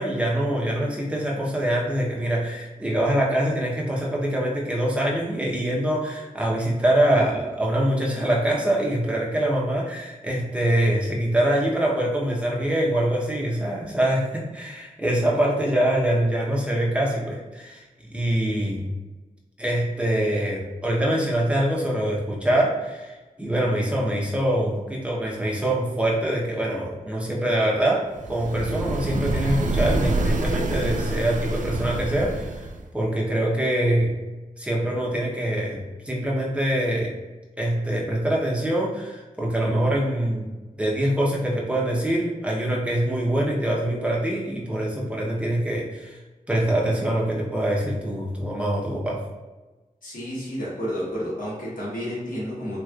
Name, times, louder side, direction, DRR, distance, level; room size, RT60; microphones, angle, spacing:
voice 1, 0.0-18.9 19.6-32.7 32.9-34.1 34.6-37.1 37.6-40.5 40.8-46.2 46.5-49.2, right 1 dB, 10° right, -4 dB, 0.9 m, -24 dB
sound 1, 28.2-32.9, right 2 dB, 65° right, 0.4 m, -26 dB
voice 2, 50.0-52.8, equal, 75° left, -7 dB, 1.3 m, -31 dB
3.1 x 3.0 x 2.4 m, 1.2 s
cardioid pair, 55°, 14 cm